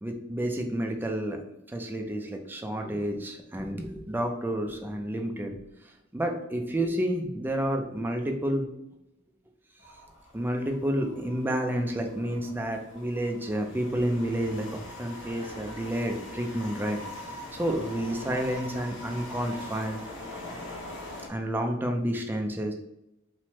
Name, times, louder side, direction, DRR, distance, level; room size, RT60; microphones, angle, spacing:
voice 1, 0.0-1.4 1.7-5.5 6.1-8.7 10.3-17.0 17.5-20.0 21.3-22.7, right 1 dB, 10° right, 3 dB, 0.3 m, -30 dB
sound 1, 9.8-21.3, left 1 dB, 65° left, 0.7 m, -43 dB
3.1 x 2.1 x 2.8 m, 0.87 s
head